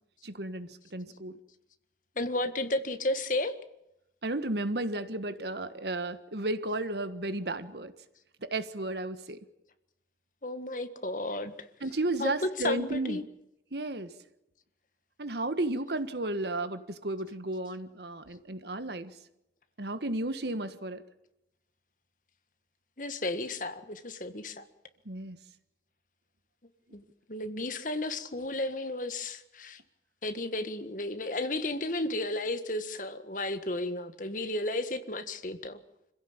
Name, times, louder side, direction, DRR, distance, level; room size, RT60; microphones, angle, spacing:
voice 1, 0.2-1.4 4.2-7.9 8.4-9.4 11.8-13.3 13.7-14.1 15.2-19.1 19.8-21.0 25.0-25.4, right 2 dB, 65° right, 11 dB, 1.5 m, -33 dB
voice 2, 2.1-3.5 10.4-11.7 12.2-12.3 12.6-13.2 23.0-24.7 26.9-27.0 27.3-29.8 30.2-35.8, left 2 dB, 45° left, 10 dB, 1.7 m, -33 dB
26.5 x 16.0 x 8.8 m, 0.87 s
head